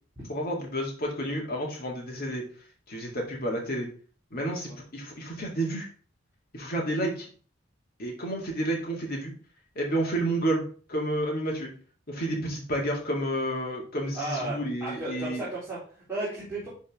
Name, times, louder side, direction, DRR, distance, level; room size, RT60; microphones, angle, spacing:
voice 1, 0.3-2.4 2.9-3.9 4.3-5.9 6.5-7.3 8.0-9.3 9.8-10.6 10.9-11.7 12.1-15.4, right 1 dB, 50° left, -1 dB, 2.2 m, -30 dB
voice 2, 14.1-16.7, right 2 dB, 10° right, -10 dB, 3.6 m, -34 dB
11.5 x 4.2 x 3.6 m, 0.40 s
head